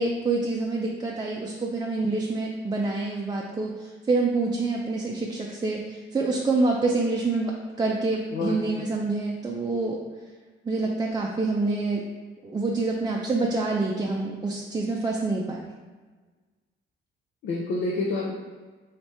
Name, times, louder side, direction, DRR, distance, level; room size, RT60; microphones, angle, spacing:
voice 1, 0.0-10.0 10.6-12.0 12.4-15.6, right 3 dB, 20° right, -2 dB, 0.5 m, -27 dB
voice 2, 8.3-8.9 17.4-18.3, left 2 dB, 70° left, -2 dB, 0.7 m, -28 dB
3.3 x 2.8 x 4.6 m, 1.4 s
cardioid pair, 90°, 20 cm